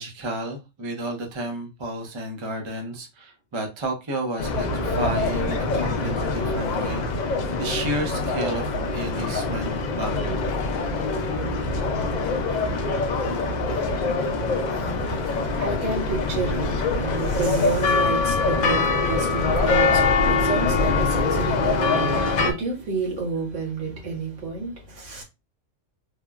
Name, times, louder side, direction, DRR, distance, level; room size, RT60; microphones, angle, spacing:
voice 1, 0.0-7.0 7.6-10.4, right 1 dB, 30° right, 0.5 m, -31 dB
sound 1, 4.4-22.5, left 3 dB, 60° left, 0.4 m, -24 dB
voice 2, 14.7-25.2, right 3 dB, 70° right, 1.4 m, -30 dB
3.5 x 2.0 x 2.3 m
omnidirectional pair, 1.3 m